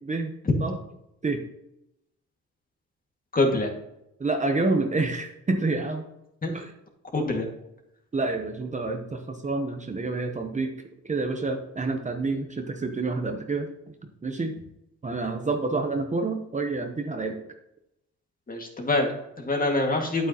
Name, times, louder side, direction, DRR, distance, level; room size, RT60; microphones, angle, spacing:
voice 1, 0.0-0.3 0.6-0.8 1.2-1.4 4.2-6.1 6.5-6.7 8.1-10.7 11.0-13.7 14.2-14.6 15.0-17.4, right 3 dB, 25° right, 4 dB, 0.9 m, -28 dB
voice 2, 3.3-3.7 6.4-6.6 7.1-7.5 18.5-20.3, left 2 dB, 30° left, 2 dB, 2.0 m, -25 dB
9.0 x 8.5 x 3.0 m, 0.83 s
cardioid pair, 90°, 30 cm